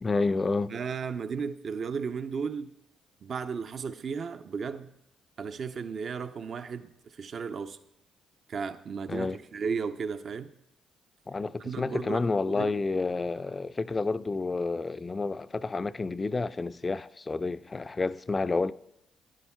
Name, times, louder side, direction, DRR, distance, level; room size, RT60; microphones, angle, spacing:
voice 1, 0.0-0.7 9.1-9.4 11.3-18.7, left 3 dB, 30° left, 0.3 m, -30 dB
voice 2, 0.7-2.7 3.2-4.9 5.4-7.8 8.5-10.5 11.6-12.7, right 5 dB, 55° right, 0.5 m, -34 dB
11.0 x 11.0 x 2.2 m
hypercardioid pair, 55°, 0 cm